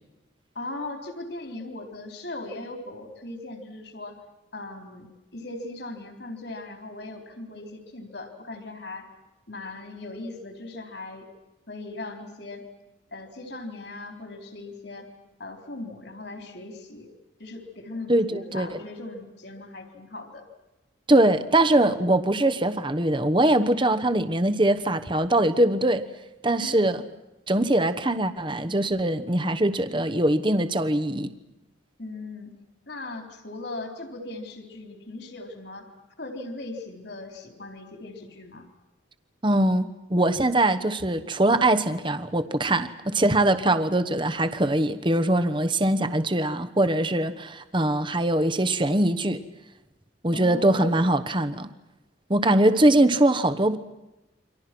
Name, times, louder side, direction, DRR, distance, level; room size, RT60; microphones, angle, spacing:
voice 1, 0.5-4.2 4.5-5.1 5.3-9.1 9.5-11.3 11.7-12.6 13.1-15.1 15.4-17.1 17.4-20.4 26.6-26.9 32.0-32.5 32.9-35.9 36.2-38.7 50.3-51.1, left 2 dB, 60° left, 4 dB, 4.0 m, -38 dB
voice 2, 18.1-18.8 21.1-26.0 26.4-27.0 27.5-31.3 39.4-49.4 50.2-51.7 52.3-53.8, right 1 dB, 25° right, 9 dB, 1.1 m, -22 dB
29.5 x 25.0 x 6.1 m, 0.99 s
head